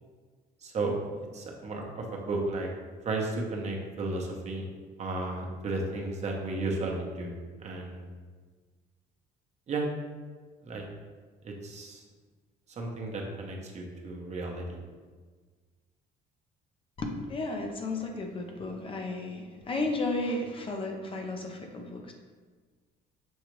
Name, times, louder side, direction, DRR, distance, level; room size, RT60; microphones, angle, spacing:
voice 1, 0.6-0.9 1.3-2.7 3.0-4.6 5.0-7.3 7.6-8.0 9.7-9.9 10.6-10.8 11.4-12.0 12.8-14.8, right 2 dB, 40° right, 0 dB, 0.8 m, -33 dB
voice 2, 17.0-22.1, left 2 dB, 30° left, 2 dB, 0.5 m, -33 dB
6.2 x 2.4 x 3.1 m, 1.5 s
cardioid pair, 110°, 17 cm